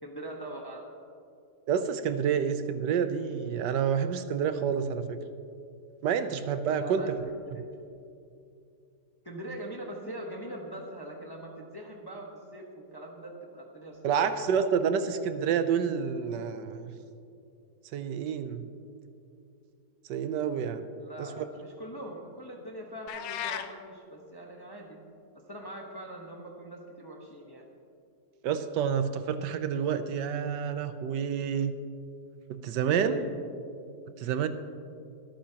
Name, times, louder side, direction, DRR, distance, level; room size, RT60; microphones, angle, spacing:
voice 1, 0.0-0.8 6.7-7.7 9.2-14.3 21.0-25.0 25.3-27.6 32.8-33.3, right 1 dB, 20° left, 0 dB, 0.8 m, -41 dB
voice 2, 1.7-5.2 6.0-7.2 14.0-16.9 17.9-18.6 20.1-20.9 21.2-21.4 28.4-31.7 32.5-33.2 34.2-34.5, right 7 dB, 80° right, 10 dB, 1.2 m, -28 dB
sound 1, 23.1-23.7, left 10 dB, 90° left, 1.3 m, -34 dB
23.0 x 8.5 x 2.9 m, 2.5 s
omnidirectional pair, 1.9 m